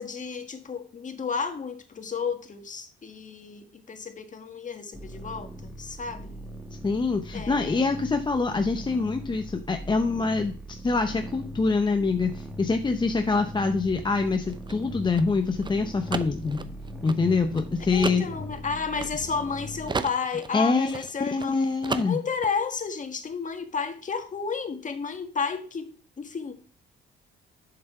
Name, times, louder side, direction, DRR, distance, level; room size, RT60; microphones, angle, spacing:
voice 1, 0.0-6.3 7.3-7.9 17.9-21.6 22.0-25.9 26.2-26.5, left 5 dB, 40° left, 1.6 m, -32 dB
sound 1, 4.9-20.0, right 1 dB, 5° right, 1.6 m, -40 dB
voice 2, 6.8-16.6 17.0-18.2 20.5-20.9 21.2-22.2, left 4 dB, 25° left, 0.7 m, -25 dB
sound 2, 14.3-19.6 19.9-21.5 21.8-22.5, right 4 dB, 25° right, 0.7 m, -34 dB
7.4 x 6.8 x 4.3 m
cardioid pair, 90°, 20 cm